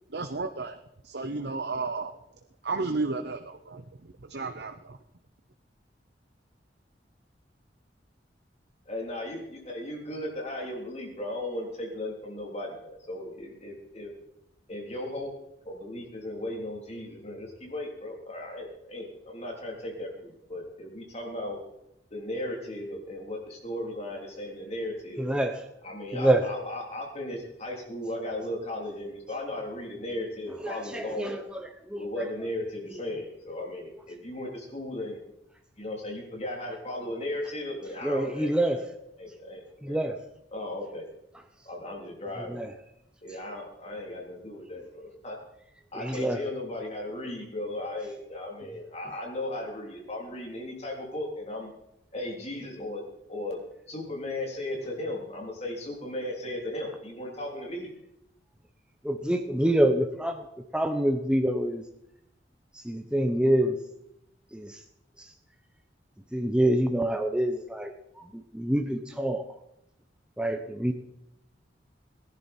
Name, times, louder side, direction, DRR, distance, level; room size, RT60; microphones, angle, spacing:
voice 1, 0.1-2.2 2.6-3.8 4.3-5.0, right 3 dB, 65° right, 7 dB, 0.9 m, -32 dB
voice 2, 8.9-14.1 14.7-15.3 15.6-21.6 22.1-25.2 25.8-31.4 32.0-35.2 35.8-38.8 39.2-40.0 40.5-41.0 41.7-42.6 43.2-45.4 45.9-51.7 52.1-53.0 53.3-53.6 53.9-57.9, left 1 dB, 35° left, -1 dB, 3.6 m, -36 dB
voice 3, 25.2-25.6 26.1-26.4 30.6-32.3 38.0-38.9 39.8-40.2 42.5-42.7 45.9-46.4 59.0-60.5 60.7-61.8 62.7-63.8 64.5-64.8 66.3-69.4 70.4-70.9, right 1 dB, 5° right, 5 dB, 0.9 m, -26 dB
20.0 x 11.0 x 4.5 m, 0.81 s
head